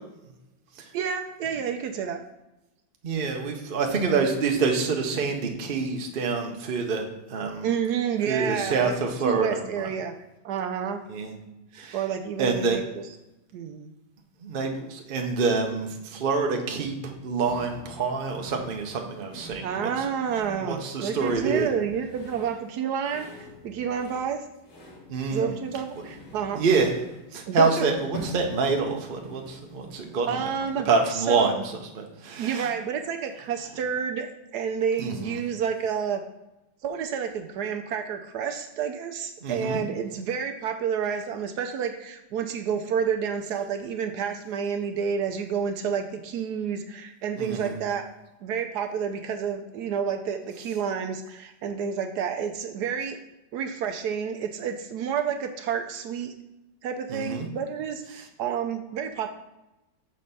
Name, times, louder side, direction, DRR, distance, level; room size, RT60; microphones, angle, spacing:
voice 1, 0.9-2.2 7.6-8.9 9.2-10.1 10.4-11.0 11.9-12.8 13.5-13.9 19.6-24.4 25.3-26.6 27.5-27.8 30.3-31.6 32.4-34.3 34.5-36.2 36.8-48.0 48.4-53.2 53.5-56.3 56.8-59.3, right 7 dB, 70° right, 6 dB, 1.1 m, -29 dB
voice 2, 3.0-7.7 8.3-9.9 11.1-11.3 11.7-12.0 12.4-12.8 14.4-19.9 20.7-21.7 25.1-25.6 26.6-27.0 27.3-30.5 30.9-32.7 35.0-35.3 39.4-39.8 47.3-47.8 57.1-57.5, right 4 dB, 45° right, 2 dB, 0.7 m, -26 dB
sound 1, 17.4-30.9, left 1 dB, 75° left, 2.0 m, -46 dB
6.3 x 4.3 x 5.3 m, 0.95 s
omnidirectional pair, 1.9 m